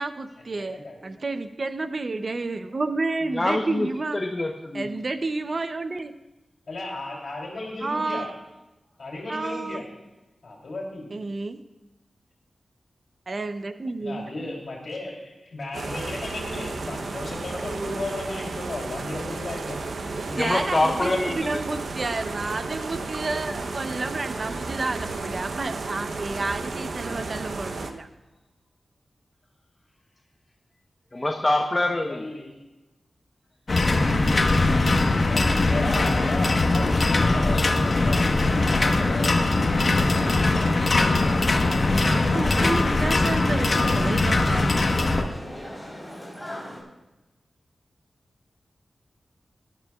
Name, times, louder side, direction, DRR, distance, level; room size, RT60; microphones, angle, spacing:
voice 1, 0.0-4.2 4.7-6.1 7.8-8.4 9.3-9.8 11.1-11.6 13.3-14.5 17.7-18.0 20.1-28.1 41.9-44.6, right 3 dB, 50° right, 10 dB, 0.6 m, -30 dB
voice 2, 0.5-1.0 6.7-8.4 9.0-9.8 10.4-11.1 14.0-19.9 31.8-32.5 35.3-39.7, left 2 dB, 75° left, -3 dB, 3.1 m, -35 dB
voice 3, 3.3-3.9 4.3-4.9 20.3-21.4 31.1-32.2, left 2 dB, 30° left, 2 dB, 0.9 m, -24 dB
sound 1, 15.7-27.9, right 3 dB, 85° right, 0.8 m, -33 dB
sound 2, 33.7-45.2, left 2 dB, 55° left, 1.2 m, -21 dB
sound 3, 36.0-46.8, equal, 5° right, 3.9 m, -39 dB
18.5 x 12.0 x 2.4 m, 1.1 s
wide cardioid pair, 85°, 0 cm